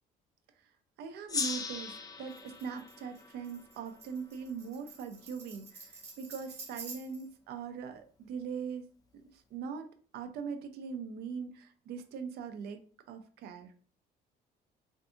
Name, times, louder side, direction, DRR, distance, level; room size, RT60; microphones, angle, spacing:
voice 1, 1.0-8.9 9.1-9.9 10.1-12.8 13.1-13.7, right 6 dB, 75° right, 8 dB, 0.5 m, -41 dB
Gong, 1.3-4.4, left 4 dB, 20° left, 0.3 m, -39 dB
Tambourine, 2.3-7.3, right 4 dB, 40° right, 0.9 m, -49 dB
2.6 x 2.4 x 2.4 m, 0.43 s
cardioid pair, 110°, 17 cm